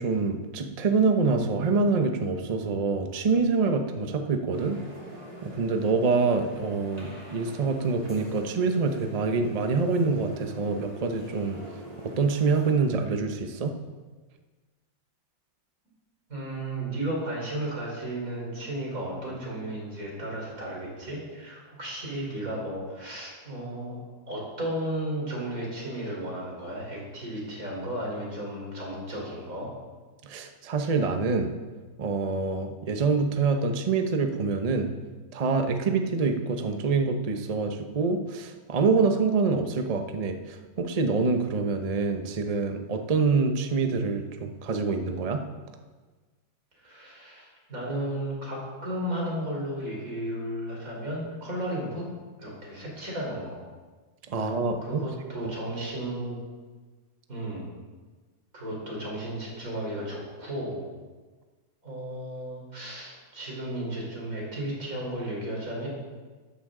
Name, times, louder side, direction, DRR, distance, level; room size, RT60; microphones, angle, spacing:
voice 1, 0.0-4.8 5.4-11.6 12.2-13.7 30.2-31.5 32.0-34.9 35.3-45.4 54.3-55.0, right 4 dB, 80° right, 5 dB, 0.3 m, -26 dB
sound 1, 4.5-12.9, right 1 dB, 20° right, 2.1 m, -44 dB
voice 2, 16.3-24.0 24.3-29.7 46.8-52.0 52.4-53.6 54.3-56.4 57.3-57.7 58.5-60.8 61.8-65.9, right 1 dB, 45° right, -3 dB, 4.4 m, -34 dB
13.5 x 13.0 x 3.8 m, 1.4 s
omnidirectional pair, 2.1 m